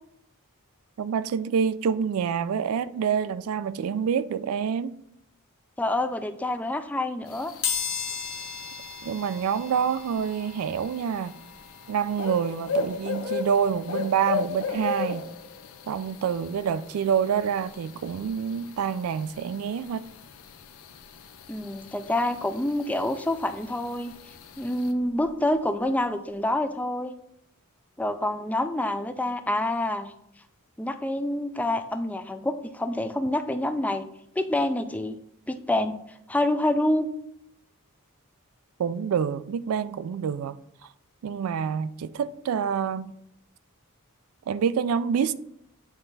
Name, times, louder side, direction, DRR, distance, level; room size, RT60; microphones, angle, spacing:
voice 1, 1.0-4.9 9.0-11.3 11.9-15.2 15.9-20.0 38.8-40.6 41.2-43.1 44.5-45.3, right 7 dB, 70° right, 0.3 m, -27 dB
voice 2, 5.8-7.5 21.5-24.1 24.6-27.1 28.0-30.1 30.8-34.1 34.4-35.2 35.5-36.0 36.3-37.1, left 1 dB, 5° left, 0.3 m, -27 dB
sound 1, 7.3-24.9, left 5 dB, 65° left, 0.6 m, -37 dB
sound 2, 7.6-18.3 18.8-18.9 20.0-20.1 20.4-22.5 22.8-25.5 25.8-26.0 26.3-26.4, left 6 dB, 45° left, 1.2 m, -39 dB
9.0 x 3.3 x 4.0 m
head